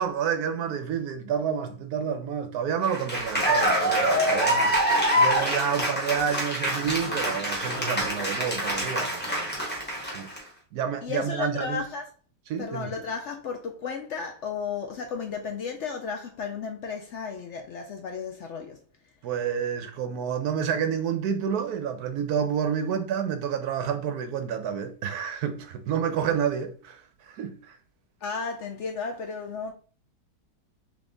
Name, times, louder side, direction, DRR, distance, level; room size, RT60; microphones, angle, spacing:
voice 1, 0.0-9.6 10.1-10.3 10.7-11.9 12.5-12.9 19.2-27.8, right 7 dB, 70° right, 1.0 m, -29 dB
Cheering / Applause, 2.8-10.4, equal, 5° left, 1.2 m, -25 dB
voice 2, 11.0-12.1 12.6-18.8 28.2-29.7, left 5 dB, 75° left, 0.6 m, -33 dB
3.5 x 3.5 x 3.8 m
omnidirectional pair, 1.8 m